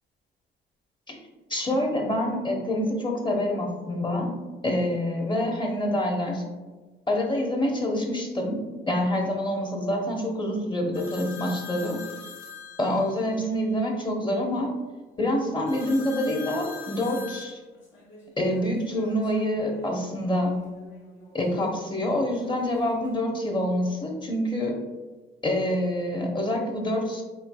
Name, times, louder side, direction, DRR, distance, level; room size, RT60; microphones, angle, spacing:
voice 1, 1.5-4.3 4.6-6.4 7.1-12.0 12.8-14.7 15.2-17.6 18.4-20.6 21.3-24.8 25.4-27.2, left 1 dB, 25° left, 1 dB, 0.9 m, -26 dB
sound 1, 10.9-13.4 15.7-19.9 20.3-21.4 22.2-23.1, left 6 dB, 70° left, 1.2 m, -44 dB
4.5 x 3.7 x 2.3 m, 1.2 s
cardioid pair, 90°, 20 cm